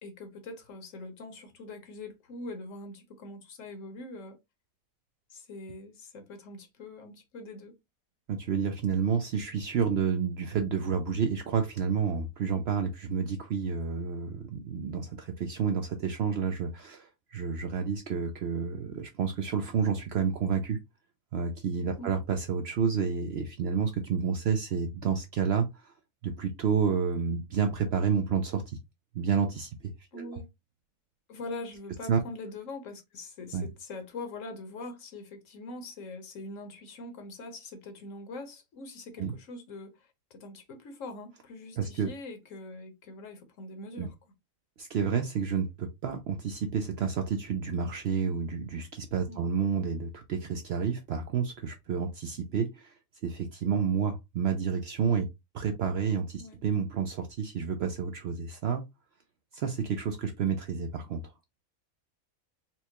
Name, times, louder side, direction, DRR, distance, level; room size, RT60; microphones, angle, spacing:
voice 1, 0.0-4.4 5.3-7.7 22.0-22.2 30.1-30.5 31.3-44.1 49.3-49.5 56.4-56.6, left 2 dB, 65° left, 1.2 m, -43 dB
voice 2, 8.3-20.8 21.3-25.9 26.2-28.6 29.1-30.4 32.1-32.2 33.5-33.7 39.2-39.3 41.8-42.1 44.0-44.1 44.8-55.3 55.5-58.8 59.5-61.2, right 6 dB, 65° right, 0.6 m, -30 dB
4.3 x 2.2 x 2.8 m
omnidirectional pair, 1.4 m